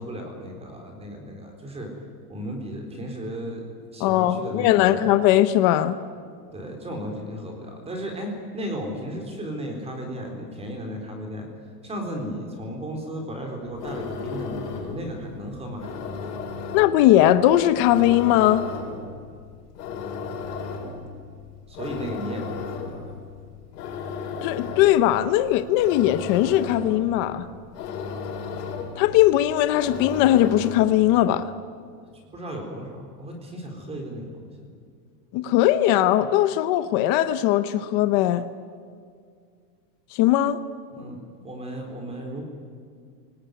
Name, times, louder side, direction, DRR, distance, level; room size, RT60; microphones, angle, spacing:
voice 1, 0.0-1.9 2.3-5.1 6.5-11.5 11.8-16.2 21.7-23.0 32.3-34.5 40.9-41.2 41.4-42.4, equal, 15° right, 2 dB, 4.0 m, -34 dB
voice 2, 4.0-6.0 16.7-18.7 24.4-27.5 29.0-31.5 35.3-38.4 40.1-40.6, left 13 dB, 35° left, 12 dB, 0.7 m, -19 dB
sound 1, 13.6-31.1, left 5 dB, 85° left, 5.6 m, -35 dB
28.5 x 19.0 x 9.5 m, 2.1 s
supercardioid pair, 170°, 46 cm